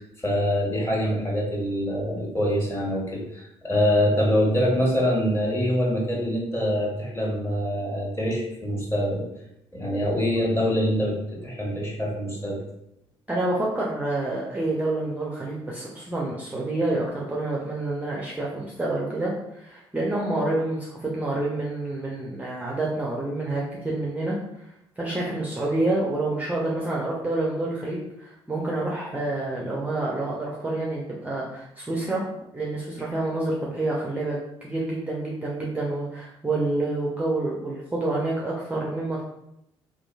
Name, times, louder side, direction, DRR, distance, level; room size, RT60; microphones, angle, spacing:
voice 1, 0.0-9.3 9.7-12.6, equal, 15° left, -4 dB, 1.2 m, -25 dB
voice 2, 13.3-24.4 25.0-32.2 32.5-39.2, right 2 dB, 10° right, -4 dB, 0.5 m, -28 dB
2.9 x 2.3 x 2.3 m, 0.82 s
figure-of-eight pair, 50°, 14 cm